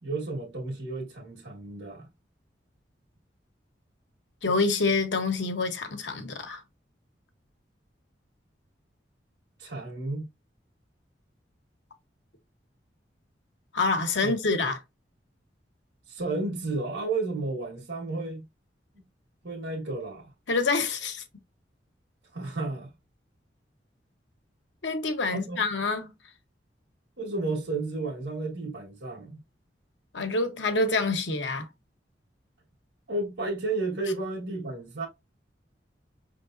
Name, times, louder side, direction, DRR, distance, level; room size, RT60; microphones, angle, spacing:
voice 1, 0.0-2.1 9.6-10.2 14.2-14.3 14.6-14.7 16.1-18.4 18.9-19.0 19.4-20.3 22.3-22.9 25.3-25.6 27.2-29.4 33.1-35.1, right 3 dB, 80° right, 1.6 m, -32 dB
voice 2, 4.4-6.6 13.7-14.8 20.5-21.2 24.8-26.1 30.1-31.7, left 3 dB, 85° left, 1.1 m, -27 dB
5.8 x 3.4 x 2.6 m
head